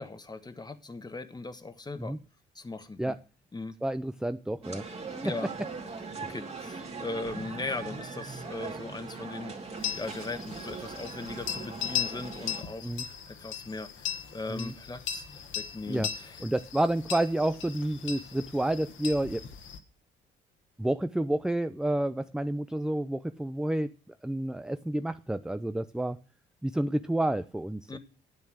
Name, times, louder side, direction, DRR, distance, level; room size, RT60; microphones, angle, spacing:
voice 1, 0.0-2.2 2.5-3.1 3.5-3.7 5.2-5.5 6.0-16.4 27.9-28.0, left 3 dB, 20° left, 1.3 m, -39 dB
voice 2, 3.8-4.8 5.2-5.3 6.2-6.3 12.8-13.0 14.5-14.7 15.9-16.1 16.4-19.4 20.8-23.9 24.2-26.2 26.6-28.0, right 1 dB, 5° right, 0.5 m, -29 dB
sound 1, 4.6-12.6, right 4 dB, 30° right, 2.7 m, -40 dB
sound 2, 9.8-19.8, left 9 dB, 75° left, 1.5 m, -38 dB
9.4 x 8.6 x 6.4 m
cardioid pair, 90°, 20 cm